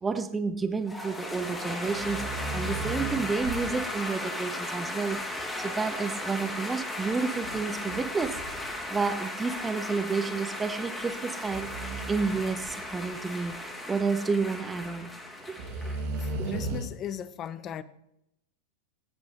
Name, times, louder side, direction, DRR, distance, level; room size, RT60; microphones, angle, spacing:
voice 1, 0.0-11.7 12.1-13.6 13.9-15.1 16.4-16.5, right 4 dB, 15° right, 1.2 m, -30 dB
sound 1, 0.9-16.4, left 1 dB, 10° left, 2.6 m, -36 dB
sound 2, 1.8-3.9 7.3-8.9 9.6-9.7 11.5-13.1 14.8-14.9 15.6-16.9, right 2 dB, 50° right, 2.3 m, -36 dB
voice 2, 16.2-17.8, left 10 dB, 30° left, 0.8 m, -37 dB
20.0 x 9.5 x 3.2 m
figure-of-eight pair, 90°, 0 cm